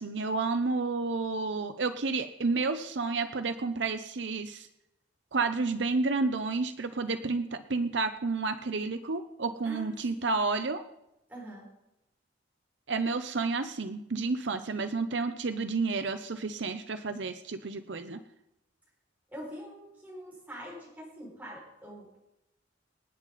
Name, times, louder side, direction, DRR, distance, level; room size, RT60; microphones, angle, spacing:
voice 1, 0.0-4.7 5.3-10.8 12.9-18.2, right 3 dB, 70° right, 9 dB, 0.7 m, -30 dB
voice 2, 9.6-10.3 11.3-11.7 19.3-22.2, equal, 10° right, -4 dB, 6.0 m, -44 dB
27.0 x 9.1 x 4.1 m, 0.87 s
head